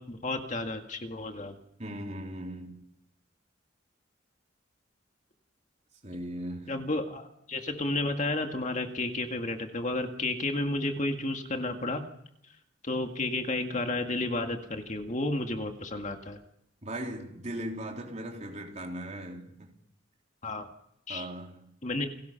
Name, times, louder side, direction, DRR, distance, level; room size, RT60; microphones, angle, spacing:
voice 1, 0.0-1.6 6.7-12.0 12.8-16.4 20.4-20.7 21.1-21.3 21.8-22.1, left 2 dB, 40° left, 2.0 m, -32 dB
voice 2, 1.8-2.8 6.0-6.8 16.8-19.7 21.1-21.7, right 1 dB, 35° right, 3.8 m, -38 dB
30.0 x 18.0 x 5.8 m
head